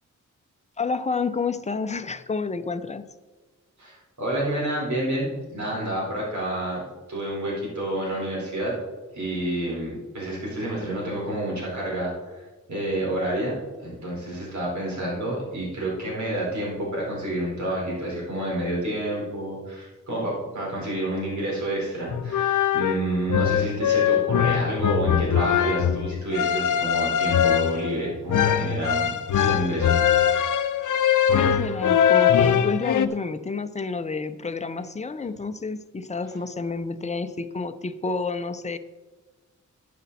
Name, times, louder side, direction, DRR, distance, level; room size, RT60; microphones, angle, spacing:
voice 1, 0.8-3.0 31.3-38.8, left 4 dB, 20° left, 10 dB, 0.6 m, -29 dB
voice 2, 3.8-6.8 7.1-8.7 9.1-13.5 13.8-29.9, right 1 dB, 65° right, -4 dB, 4.3 m, -29 dB
sound 1, 22.1-33.1, left 9 dB, 75° left, 0.6 m, -22 dB
12.0 x 9.4 x 4.2 m, 1.2 s
wide cardioid pair, 130°, 31 cm